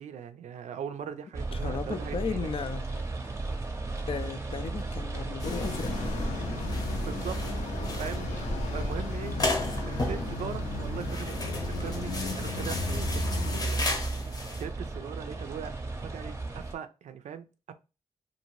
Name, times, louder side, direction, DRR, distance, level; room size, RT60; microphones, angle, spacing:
voice 1, 0.0-2.5 7.0-9.4 9.9-11.4 11.7-14.3 14.6-17.7, right 8 dB, 85° right, 0.4 m, -41 dB
sound 1, 1.3-16.7, right 3 dB, 25° right, 0.6 m, -35 dB
voice 2, 1.5-3.1 4.1-5.9, left 6 dB, 50° left, 0.4 m, -35 dB
sound 2, 5.4-13.6, left 4 dB, 85° left, 0.7 m, -36 dB
sound 3, 5.4-14.6, left 2 dB, 35° left, 0.7 m, -35 dB
2.7 x 2.5 x 3.0 m
cardioid pair, 85°, 12 cm